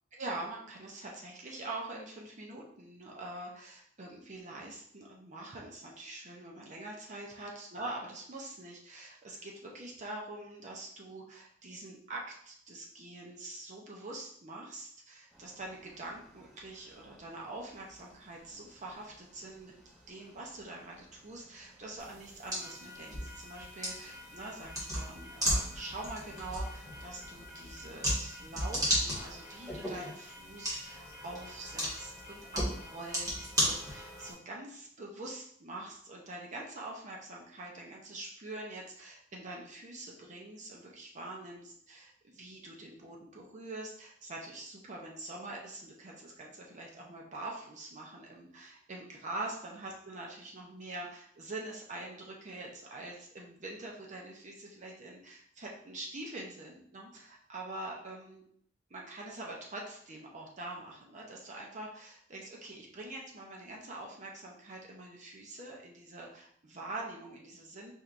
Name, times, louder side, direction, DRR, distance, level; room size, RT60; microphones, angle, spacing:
voice 1, 0.1-19.7 20.1-58.4 58.9-67.9, right 2 dB, 40° right, -2 dB, 0.7 m, -44 dB
sound 1, 15.3-34.3, left 1 dB, 5° right, 0.8 m, -53 dB
sound 2, 22.0-34.3, equal, 20° right, 1.5 m, -36 dB
4.4 x 3.4 x 2.5 m, 0.65 s
head